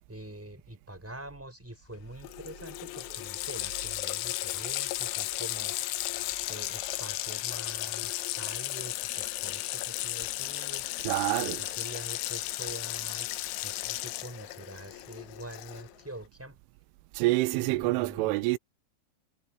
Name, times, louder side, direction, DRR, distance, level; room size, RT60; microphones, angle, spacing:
voice 1, 0.1-5.8 6.5-10.9 11.4-13.3 13.6-16.6 17.5-18.4, right 1 dB, 5° right, 5.6 m, -45 dB
Water tap faucet, 1.9-2.0 2.2-16.0, left 17 dB, 85° left, 3.3 m, -35 dB
voice 2, 11.1-11.6 17.2-18.6, right 20 dB, 90° right, 3.1 m, -27 dB
omnidirectional pair, 5.5 m